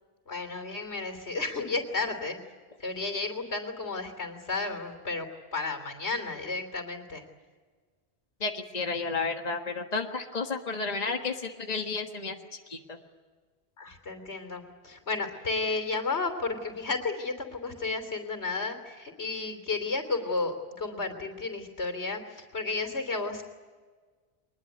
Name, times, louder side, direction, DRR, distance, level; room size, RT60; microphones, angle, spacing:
voice 1, 0.3-2.4 2.8-7.2 13.8-23.4, left 3 dB, 85° left, 7 dB, 3.4 m, -32 dB
voice 2, 8.4-13.0, left 4 dB, 40° left, 4 dB, 1.6 m, -32 dB
24.0 x 20.5 x 9.5 m, 1.5 s
omnidirectional pair, 1.1 m